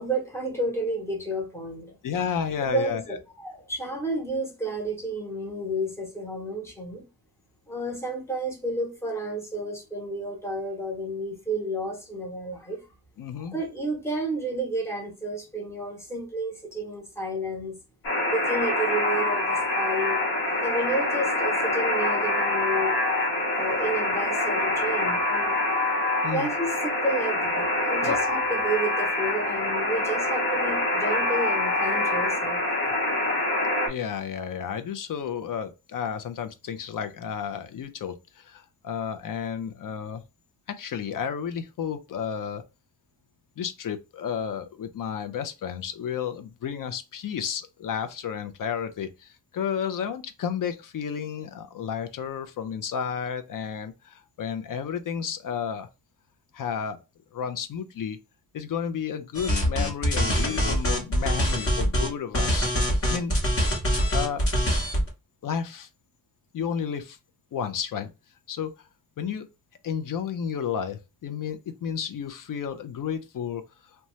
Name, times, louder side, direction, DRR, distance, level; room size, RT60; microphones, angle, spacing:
voice 1, 0.0-2.0 2.6-7.0 7.7-12.8 13.4-17.8 18.2-20.2 20.6-23.0 23.5-25.6 26.3-32.6, right 1 dB, 5° left, 0.8 m, -31 dB
voice 2, 2.0-3.2 13.2-13.6 26.2-26.5 28.0-28.2 33.9-40.2 40.7-42.6 43.6-55.9 56.5-57.0 57.3-58.2 58.5-62.7 63.1-63.4 64.1-64.5 65.4-65.9 66.5-67.2 67.5-68.1 68.5-68.7 69.2-69.4 69.8-73.6, left 7 dB, 60° left, 0.5 m, -32 dB
Alarm, 18.0-33.9, left 1 dB, 85° left, 1.0 m, -25 dB
sound 1, 59.4-62.1 62.3-65.1, equal, 40° left, 0.9 m, -24 dB
2.7 x 2.2 x 3.0 m
wide cardioid pair, 130°, 36 cm